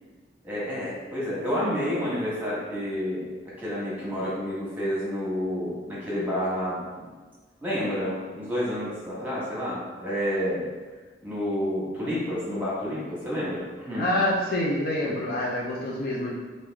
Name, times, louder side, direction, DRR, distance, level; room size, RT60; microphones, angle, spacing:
voice 1, 0.4-3.2 3.6-7.1 7.6-10.7 11.2-14.1 15.1-15.2, equal, 10° right, -8 dB, 1.2 m, -29 dB
voice 2, 14.0-16.4, left 1 dB, 50° left, -3 dB, 0.5 m, -26 dB
3.3 x 2.6 x 3.4 m, 1.4 s
head